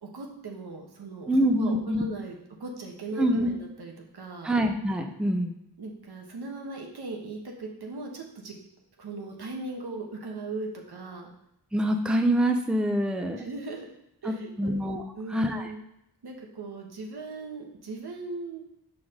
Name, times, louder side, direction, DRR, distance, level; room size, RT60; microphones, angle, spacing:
voice 1, 0.0-4.5 5.8-8.5 9.0-11.3 13.4-13.9 14.2-14.8 15.1-15.8 16.2-18.6, right 3 dB, 85° right, 1 dB, 1.2 m, -38 dB
voice 2, 1.3-2.0 3.2-3.5 4.4-5.5 11.7-13.4 14.3-15.0 15.3-15.7, right 1 dB, ahead, 4 dB, 0.6 m, -25 dB
6.1 x 4.8 x 3.6 m, 0.80 s
wide cardioid pair, 75°, 38 cm